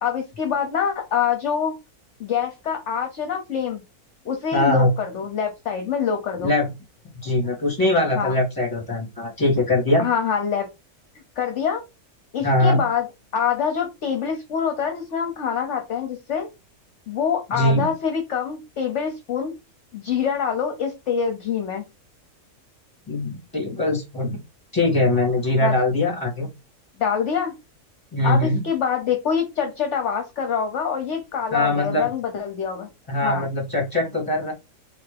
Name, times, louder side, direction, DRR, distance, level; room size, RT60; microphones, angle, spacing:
voice 1, 0.0-1.8 2.2-3.8 4.2-6.5 8.2-8.3 10.0-10.7 11.4-11.8 12.3-13.1 13.3-16.5 17.1-19.5 19.9-21.8 25.6-25.8 27.0-27.5 28.2-32.9 33.2-33.4, left 7 dB, 60° left, 5 dB, 1.0 m, -25 dB
voice 2, 4.5-4.9 6.4-6.7 7.2-10.0 12.4-12.8 17.5-17.9 23.1-24.4 24.7-26.5 28.1-28.6 31.5-32.1 33.1-34.5, left 2 dB, 15° left, -3 dB, 2.0 m, -21 dB
3.7 x 3.4 x 3.3 m, 0.24 s
omnidirectional pair, 1.6 m